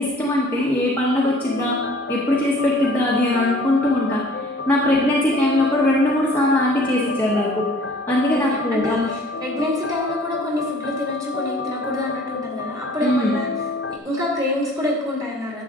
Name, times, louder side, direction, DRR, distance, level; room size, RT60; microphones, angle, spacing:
voice 1, 0.0-1.8 2.1-4.2 4.7-7.7 8.1-9.1 13.0-13.3, left 1 dB, 10° left, -6 dB, 1.2 m, -20 dB
sound 1, 1.4-14.0, left 5 dB, 55° left, 0.5 m, -30 dB
voice 2, 8.7-13.5 13.9-15.6, left 1 dB, 15° right, -3 dB, 2.0 m, -26 dB
10.5 x 7.5 x 3.7 m, 1.1 s
head